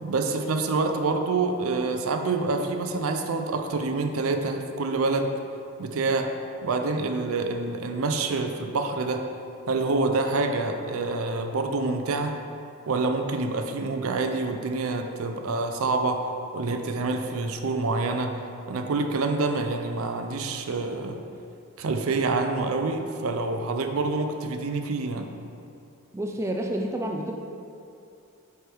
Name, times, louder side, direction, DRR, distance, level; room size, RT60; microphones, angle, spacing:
voice 1, 0.0-5.3 5.8-6.3 6.6-9.2 9.7-12.3 12.9-16.2 16.5-18.3 18.7-21.2 21.8-25.3, right 3 dB, 70° right, 5 dB, 0.5 m, -27 dB
voice 2, 26.1-27.3, right 1 dB, 15° right, 1 dB, 0.3 m, -29 dB
8.0 x 3.4 x 4.5 m, 2.6 s
head